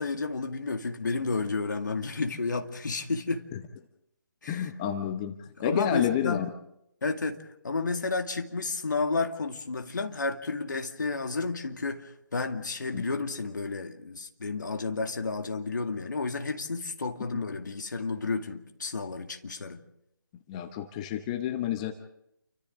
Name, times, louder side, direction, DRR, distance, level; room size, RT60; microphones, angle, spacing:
voice 1, 0.0-3.5 4.4-4.7 5.6-6.5 7.0-7.4 7.6-19.8, left 3 dB, 55° left, 2.2 m, -31 dB
voice 2, 4.5-6.5 12.9-13.0 20.5-21.9, left 10 dB, 20° left, 0.9 m, -30 dB
29.0 x 25.0 x 3.8 m
figure-of-eight pair, 145°, 12 cm